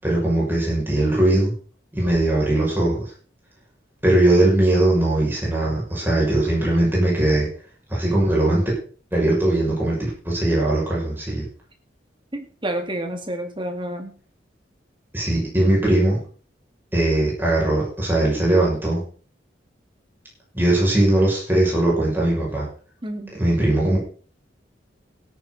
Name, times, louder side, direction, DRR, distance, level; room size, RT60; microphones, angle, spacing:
voice 1, 0.0-1.5 1.9-3.0 4.0-7.5 7.9-8.7 9.1-11.5 15.1-16.2 16.9-19.0 20.5-22.7 23.4-24.0, right 1 dB, 10° right, -4 dB, 6.6 m, -20 dB
voice 2, 12.3-14.1 23.0-23.3, right 1 dB, 25° right, 5 dB, 2.2 m, -29 dB
16.5 x 9.5 x 4.2 m, 0.41 s
head